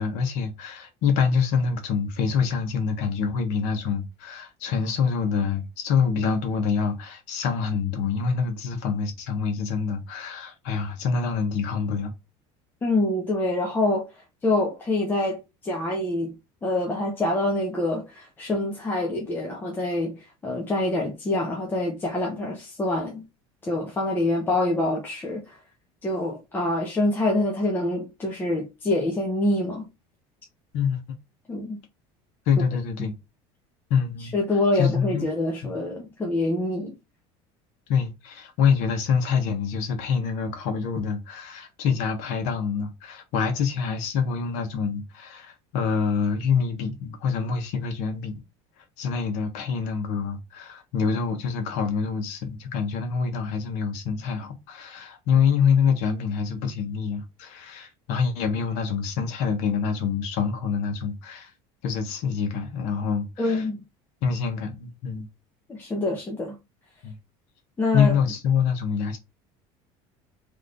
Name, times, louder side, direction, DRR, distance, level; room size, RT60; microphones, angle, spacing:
voice 1, 0.0-12.1 30.7-31.0 32.5-33.1 33.9-34.4 34.7-35.3 35.6-35.7 37.9-48.3 49.0-61.5 61.8-63.6 64.2-65.3 67.0-67.1 67.9-69.2, left 6 dB, 65° left, 1.4 m, -26 dB
voice 2, 12.8-14.1 14.4-16.3 16.6-23.2 23.6-25.6 26.0-29.9 31.5-31.8 34.3-36.9 63.4-63.8 65.7-66.6 67.8-68.1, left 2 dB, 15° left, 0.9 m, -26 dB
3.6 x 3.5 x 3.9 m
cardioid pair, 160°, 13 cm